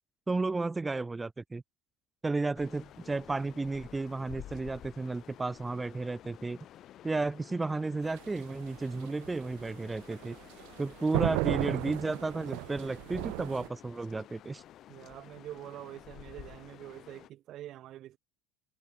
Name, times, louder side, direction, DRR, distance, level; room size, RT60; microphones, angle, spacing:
voice 1, 0.3-1.6 2.2-6.6 7.0-10.4 10.8-14.6, right 3 dB, 10° right, 0.4 m, -33 dB
sound 1, 2.5-17.3, left 12 dB, 45° left, 1.0 m, -52 dB
sound 2, 8.0-13.7, right 37 dB, 70° right, 0.6 m, -35 dB
voice 2, 14.9-18.2, right 13 dB, 45° right, 1.0 m, -46 dB
supercardioid pair, 125°, 0 cm